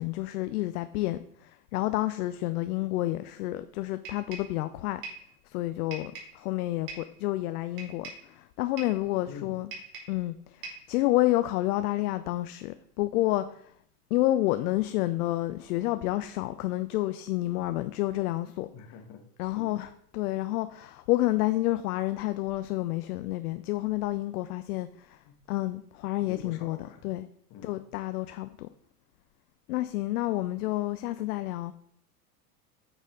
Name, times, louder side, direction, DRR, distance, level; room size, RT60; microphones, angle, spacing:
voice 1, 0.0-5.0 5.5-9.7 10.1-13.6 14.1-18.7 19.4-25.2 25.5-26.8 27.0-27.3 27.6-28.7 29.7-31.7, left 16 dB, 70° left, 0.5 m, -29 dB
sound 1, 4.0-4.6 5.0-5.3 5.9-6.4 6.9-7.2 7.8-8.3 8.8-9.0 9.7-10.2 10.6-10.9, right 4 dB, 45° right, 2.9 m, -42 dB
voice 2, 9.0-9.6 18.7-19.8 25.2-25.3 26.2-27.0 27.5-27.8, left 7 dB, 50° left, 1.5 m, -46 dB
9.0 x 4.1 x 3.8 m
hypercardioid pair, 95°, 47 cm